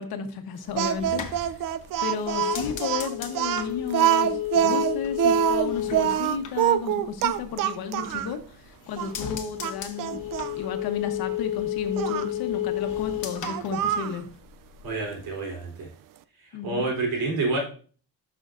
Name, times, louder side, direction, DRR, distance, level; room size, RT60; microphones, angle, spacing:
voice 1, 0.0-1.6 2.0-10.2 10.5-14.2 16.5-16.9, left 6 dB, 80° left, 7 dB, 1.2 m, -33 dB
sound 1, 0.7-7.5 7.8-8.5 8.8-14.5 14.8-15.3, left 13 dB, 55° left, 1.1 m, -32 dB
Speech, 0.8-8.3 9.0-9.1 9.6-10.5 12.0-12.3 13.4-14.2, right 10 dB, 65° right, 0.5 m, -25 dB
voice 2, 14.8-15.9 16.6-17.6, right 3 dB, 80° right, 0 dB, 3.7 m, -28 dB
12.0 x 5.6 x 2.6 m, 0.42 s
cardioid pair, 175°, 36 cm